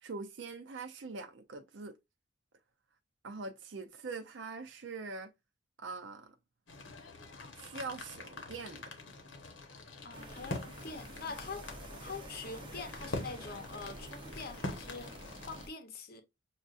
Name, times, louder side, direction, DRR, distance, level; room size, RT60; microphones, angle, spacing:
voice 1, 0.0-1.9 3.2-5.3 5.8-6.3 7.5-8.8, right 4 dB, 70° right, 0.5 m, -43 dB
sound 1, 6.7-15.7, left 2 dB, 85° left, 1.0 m, -44 dB
voice 2, 10.0-11.7 12.0-16.2, left 4 dB, 50° left, 0.8 m, -44 dB
sound 2, 10.1-15.7, right 1 dB, 25° right, 0.6 m, -49 dB
6.3 x 2.4 x 2.4 m
head